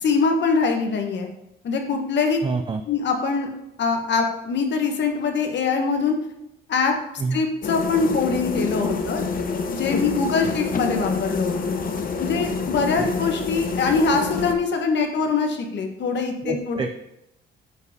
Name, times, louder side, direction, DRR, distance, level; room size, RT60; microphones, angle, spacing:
voice 1, 0.0-1.3 1.6-2.4 2.9-3.5 3.8-6.2 6.7-6.9 7.3-9.2 9.7-11.7 12.2-16.8, left 4 dB, 65° left, 4 dB, 1.5 m, -23 dB
voice 2, 2.4-2.8 7.2-7.4 13.0-13.1 16.4-16.9, right 4 dB, 25° right, 6 dB, 0.6 m, -27 dB
sound 1, 7.6-14.5, left 4 dB, 45° left, 1.0 m, -27 dB
8.3 x 4.9 x 5.1 m, 0.85 s
cardioid pair, 90°, 20 cm